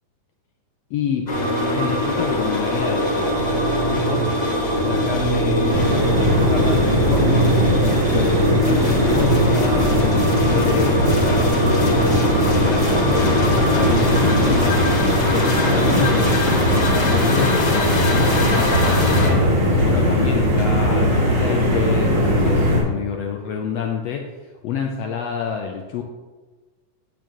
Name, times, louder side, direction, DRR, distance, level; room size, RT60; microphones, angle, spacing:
voice 1, 0.9-1.3 1.7-3.5 3.9-4.4 4.8-7.5 8.1-14.8 15.2-19.5 19.7-24.2 24.6-26.0, left 7 dB, 85° left, 2 dB, 1.5 m, -28 dB
sound 1, 1.3-19.3, equal, 35° left, 2.0 m, -21 dB
sound 2, 5.7-22.8, equal, 65° right, 4.1 m, -19 dB
10.5 x 8.6 x 3.0 m, 1.3 s
omnidirectional pair, 3.7 m